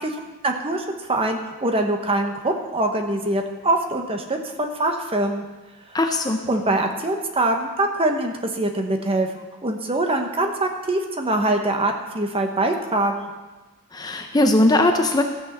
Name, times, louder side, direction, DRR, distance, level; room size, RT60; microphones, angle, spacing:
voice 1, 0.0-5.4 6.5-13.3, right 2 dB, 25° right, 4 dB, 1.1 m, -24 dB
voice 2, 5.9-6.4 13.9-15.2, left 1 dB, 20° left, 4 dB, 0.7 m, -19 dB
14.0 x 6.3 x 7.2 m, 1.3 s
head